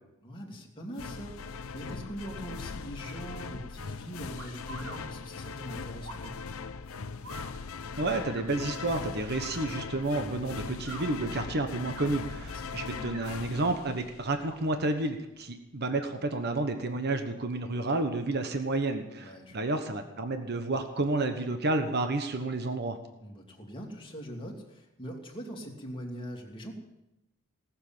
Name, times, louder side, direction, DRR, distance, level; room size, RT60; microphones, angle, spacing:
voice 1, 0.2-6.4 12.4-12.8 19.2-19.7 23.2-26.7, equal, 25° left, -1 dB, 2.8 m, -42 dB
sound 1, 1.0-14.6, left 5 dB, 75° left, 0.7 m, -40 dB
sound 2, 4.4-5.0 6.0-6.3 7.2-7.5 8.3-8.5 9.4-9.6 10.7-11.0 11.8-12.1 12.9-13.4 14.2-14.6 15.8-16.1, right 2 dB, 80° right, 2.7 m, -46 dB
voice 2, 8.0-23.0, right 2 dB, 50° right, 6 dB, 1.2 m, -30 dB
18.5 x 7.5 x 8.8 m, 0.93 s
head